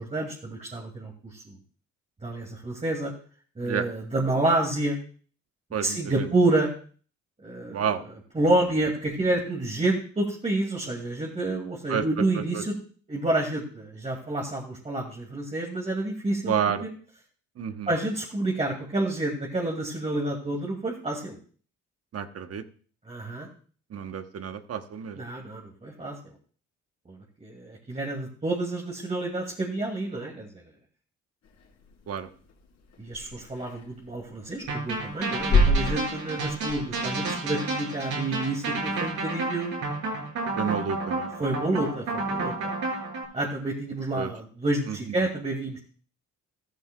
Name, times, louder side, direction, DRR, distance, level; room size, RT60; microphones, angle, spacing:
voice 1, 0.0-1.6 2.2-3.1 3.6-5.0 5.8-6.7 7.4-7.8 8.3-12.7 13.1-16.5 16.8-16.9 17.9-21.4 23.1-23.5 25.2-26.2 27.1-30.6 33.0-39.7 41.4-42.7 43.3-45.8, right 2 dB, 25° right, -1 dB, 2.4 m, -29 dB
voice 2, 7.7-8.0 11.9-12.0 12.4-12.6 16.4-16.8 17.6-17.9 22.1-22.6 23.9-25.2 32.1-32.3 40.6-41.3 44.1-44.3 44.9-45.0, right 8 dB, 50° right, 9 dB, 1.1 m, -30 dB
sound 1, 31.4-37.4, left 1 dB, 60° left, 3.9 m, -29 dB
sound 2, 34.7-43.2, right 2 dB, 75° right, 5.7 m, -30 dB
14.0 x 13.5 x 2.3 m, 0.43 s
cardioid pair, 90°, 30 cm